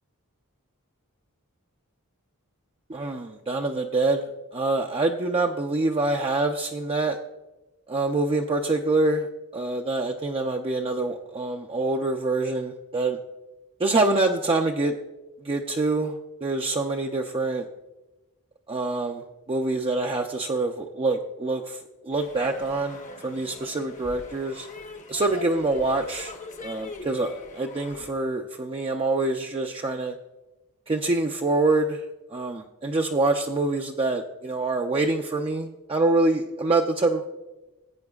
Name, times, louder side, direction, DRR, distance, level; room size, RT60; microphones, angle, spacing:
voice 1, 2.9-4.3 4.5-7.2 7.9-9.3 9.5-13.2 13.8-14.9 15.4-17.7 18.7-24.7 25.1-26.3 26.6-30.1 30.9-32.0 32.3-37.2, right 2 dB, 25° right, 2 dB, 0.4 m, -25 dB
sound 1, 22.1-28.1, left 3 dB, 35° left, 0.8 m, -42 dB
17.0 x 8.8 x 2.3 m, 1.1 s
head